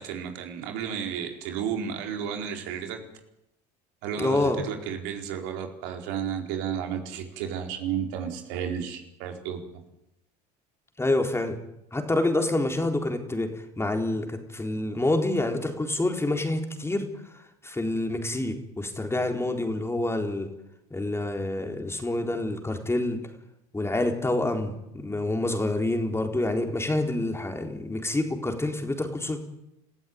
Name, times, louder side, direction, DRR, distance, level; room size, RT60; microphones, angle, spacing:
voice 1, 0.0-3.0 4.0-9.6, right 8 dB, 65° right, 4 dB, 4.5 m, -32 dB
voice 2, 4.2-4.6 11.0-11.6 11.9-17.1 17.6-20.5 20.9-23.2 23.7-29.4, left 2 dB, 10° left, 4 dB, 4.0 m, -27 dB
25.5 x 15.0 x 9.6 m, 0.86 s
hypercardioid pair, 80°, 21 cm